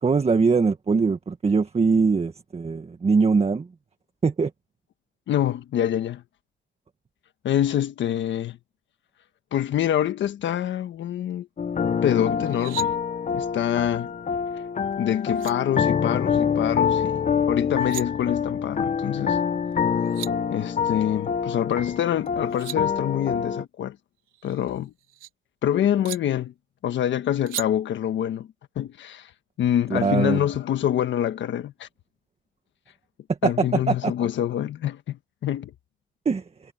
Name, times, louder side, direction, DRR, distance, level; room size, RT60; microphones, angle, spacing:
voice 1, 0.0-3.7 4.2-4.5 29.9-30.4 33.4-34.1 36.2-36.4, right 4 dB, 30° right, 1.6 m, -22 dB
voice 2, 5.3-6.2 7.4-8.6 9.5-11.5 12.0-12.9 13.3-14.1 15.0-19.4 20.5-24.0 24.4-24.9 25.6-26.5 26.8-28.5 28.7-29.3 29.6-31.9 33.4-35.7, left 10 dB, 70° left, 1.4 m, -26 dB
sound 1, 11.6-23.6, left 7 dB, 40° left, 1.2 m, -26 dB
sound 2, 12.4-12.9 14.9-15.0 15.3-15.5 17.6-18.0 19.7-19.8 20.0-20.3 22.3-22.8 24.3-25.3 26.0-26.2 27.5-27.7, right 14 dB, 90° right, 4.1 m, -36 dB
cardioid pair, 90°, 20 cm